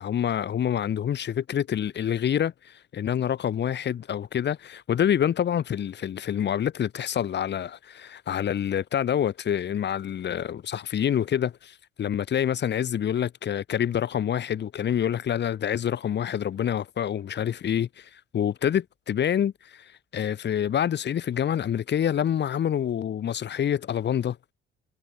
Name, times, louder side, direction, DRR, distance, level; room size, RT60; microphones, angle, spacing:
voice 1, 0.0-24.4, left 9 dB, 60° left, 3.4 m, -27 dB
cardioid pair, 90°, 20 cm